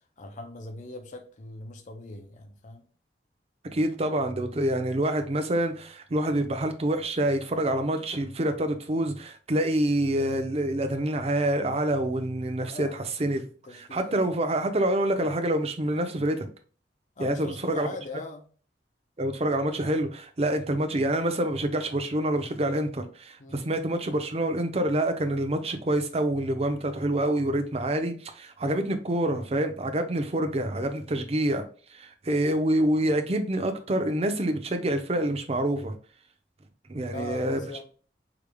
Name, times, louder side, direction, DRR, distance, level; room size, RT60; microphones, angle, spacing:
voice 1, 0.2-2.8 12.6-13.1 13.6-14.2 17.2-18.5 23.4-23.7 30.2-30.4 37.1-37.8, left 2 dB, 45° left, 0.5 m, -41 dB
voice 2, 3.7-13.5 13.7-16.5 17.2-17.9 19.2-31.6 31.9-35.9 36.9-37.6, right 1 dB, 35° right, 0.6 m, -27 dB
4.8 x 3.3 x 2.2 m
head